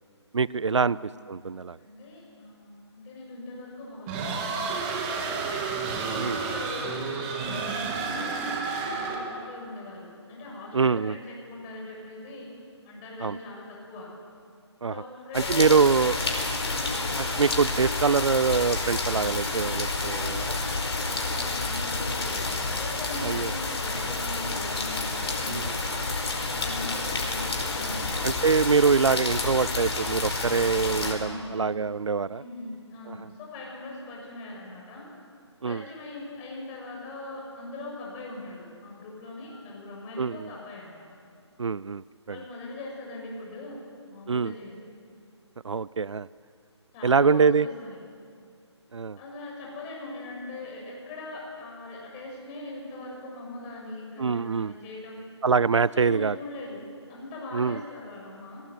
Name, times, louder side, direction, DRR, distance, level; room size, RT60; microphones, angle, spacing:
voice 1, 0.3-1.0 1.3-1.8 6.1-6.4 10.7-11.1 13.2-13.4 14.8-14.9 15.3-16.1 17.4-20.6 23.2-23.5 25.5-25.6 28.2-32.4 33.1-33.2 35.6-35.8 40.2-40.5 41.6-42.4 44.3-44.5 45.6-46.3 47.0-47.7 48.9-49.2 54.2-54.7 55.4-56.4 57.5-57.8, right 5 dB, 80° right, 21 dB, 0.5 m, -24 dB
voice 2, 1.8-4.8 6.0-12.5 12.9-14.1 14.9-16.4 16.7-17.3 20.9-26.0 26.4-28.2 31.2-31.6 32.3-35.1 35.6-41.1 42.3-43.8 44.1-44.8 46.9-48.0 49.2-55.2 55.8-58.6, left 2 dB, 20° left, -2 dB, 6.9 m, -41 dB
sound 1, 4.1-9.4, right 4 dB, 20° right, 2.5 m, -30 dB
sound 2, 15.3-31.1, left 3 dB, 60° left, 5.0 m, -29 dB
25.5 x 19.0 x 8.0 m, 2.4 s
figure-of-eight pair, 150°, 15 cm